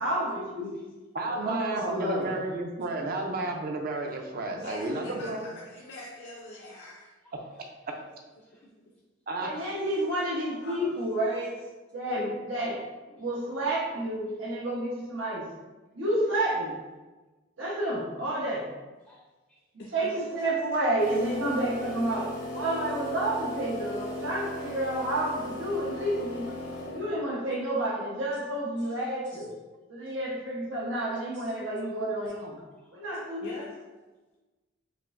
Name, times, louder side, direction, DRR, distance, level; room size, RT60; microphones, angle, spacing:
voice 1, 0.0-0.7 1.3-2.3 9.4-11.5 11.9-12.8 13.2-15.4 15.9-16.7 17.6-18.6 19.9-22.2 22.5-26.5 26.9-29.5 29.9-32.5 32.9-33.5, right 1 dB, 90° right, -5 dB, 1.0 m, -30 dB
voice 2, 1.1-5.4 9.3-9.5, right 2 dB, 50° right, 2 dB, 0.5 m, -32 dB
voice 3, 4.6-7.1 8.4-8.7 10.6-10.9 19.8-20.1 33.4-33.7, left 1 dB, 60° left, -3 dB, 0.5 m, -42 dB
voice 4, 7.2-7.6 8.4-8.6 19.0-19.6 21.3-21.4 23.2-23.6 24.1-24.2 28.8-29.4 31.3-31.5 31.8-31.9 32.6-33.0, left 1 dB, ahead, -5 dB, 0.5 m, -58 dB
sound 1, 21.0-27.3, left 1 dB, 80° left, 0.9 m, -37 dB
5.2 x 2.6 x 2.5 m, 1.2 s
head